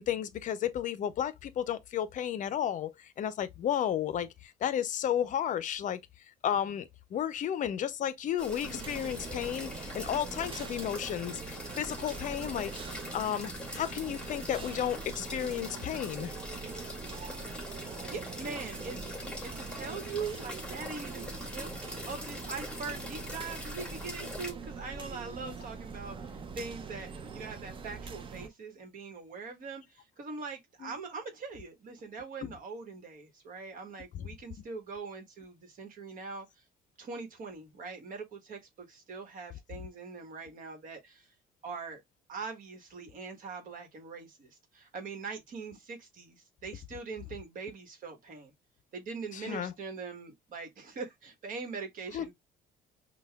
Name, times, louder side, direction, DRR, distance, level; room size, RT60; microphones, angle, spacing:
voice 1, 0.0-2.9 3.2-4.3 4.6-6.0 6.4-12.7 13.1-16.3 25.4-25.5 30.8-30.9 32.4-32.5 34.1-34.3 49.3-49.7 52.1-52.3, left 10 dB, 50° left, 0.5 m, -33 dB
sound 1, 8.4-24.5, left 1 dB, 5° left, 1.1 m, -43 dB
sound 2, 8.6-28.5, right 5 dB, 30° right, 0.6 m, -44 dB
voice 2, 18.1-19.0 19.4-21.7 22.1-26.2 26.6-27.1 27.3-29.8 30.2-36.4 37.0-38.6 38.9-41.2 41.6-42.0 42.3-44.5 44.7-46.4 46.6-48.5 48.9-52.3, right 4 dB, 55° right, 1.2 m, -42 dB
5.4 x 2.2 x 2.2 m
cardioid pair, 110°, 17 cm